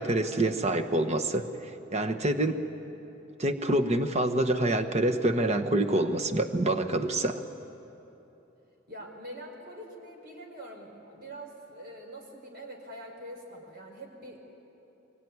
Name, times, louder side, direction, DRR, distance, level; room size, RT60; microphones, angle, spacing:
voice 1, 0.0-2.6 3.4-7.4, right 1 dB, 35° right, 6 dB, 1.3 m, -27 dB
voice 2, 8.9-14.5, right 1 dB, 55° right, 1 dB, 4.9 m, -44 dB
24.0 x 21.5 x 9.7 m, 3.0 s
head